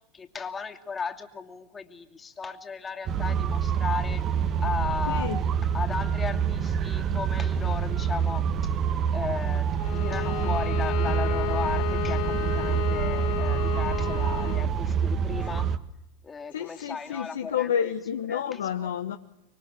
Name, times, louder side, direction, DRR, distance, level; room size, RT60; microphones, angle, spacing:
voice 1, 0.1-4.2 4.6-5.3 5.7-8.7 9.1-9.7 10.0-15.7 16.2-17.7 18.3-18.9, left 5 dB, 20° left, 2.7 m, -35 dB
sound 1, 3.1-15.8, right 7 dB, 40° right, 1.7 m, -27 dB
voice 2, 5.1-5.4 16.5-19.2, left 8 dB, 80° left, 1.2 m, -30 dB
Bowed string instrument, 9.8-14.7, left 16 dB, 60° left, 2.1 m, -32 dB
25.5 x 23.5 x 8.4 m
hypercardioid pair, 90°, 0 cm